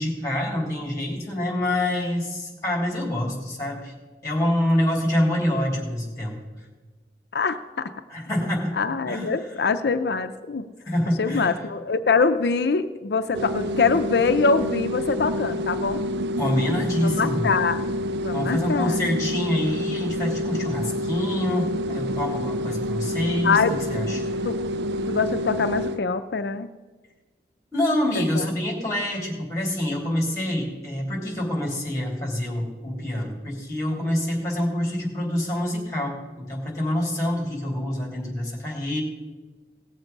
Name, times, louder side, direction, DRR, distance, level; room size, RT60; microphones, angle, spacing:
voice 1, 0.0-3.9 4.2-6.4 8.1-8.7 9.1-9.3 10.9-11.7 16.4-17.5 18.3-24.2 27.7-39.0, left 1 dB, 15° left, -1 dB, 3.0 m, -26 dB
voice 2, 7.3-7.9 8.8-10.7 11.2-16.0 17.0-17.9 18.2-19.0 23.4-23.7 24.4-24.6 25.1-26.7 28.4-28.5, left 4 dB, 70° left, 9 dB, 0.5 m, -23 dB
sound 1, 13.3-26.0, equal, 75° right, 0.4 m, -28 dB
18.0 x 7.3 x 5.2 m, 1.3 s
head